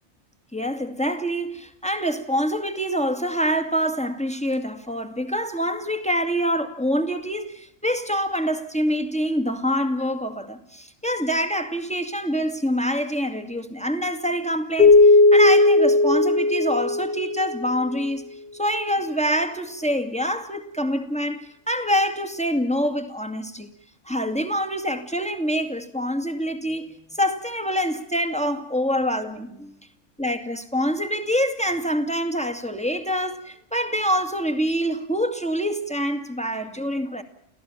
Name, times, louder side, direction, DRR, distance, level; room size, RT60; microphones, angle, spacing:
voice 1, 0.5-18.2 18.5-23.7 24.1-29.7 30.2-37.2, equal, 5° left, 2.2 m, -25 dB
Keyboard (musical), 14.8-17.8, left 2 dB, 35° right, 2.3 m, -16 dB
29.5 x 16.5 x 7.4 m
omnidirectional pair, 1.3 m